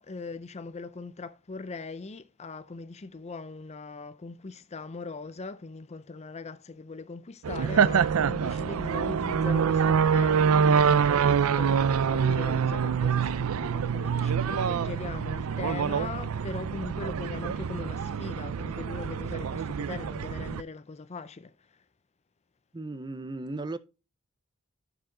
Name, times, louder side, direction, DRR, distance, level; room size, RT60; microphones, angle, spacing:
voice 1, 0.0-21.8, left 3 dB, 30° left, 0.5 m, -40 dB
sound 1, 7.4-20.6, right 6 dB, 85° right, 0.4 m, -26 dB
voice 2, 22.7-23.8, right 2 dB, 20° right, 0.5 m, -36 dB
12.0 x 4.8 x 3.7 m
head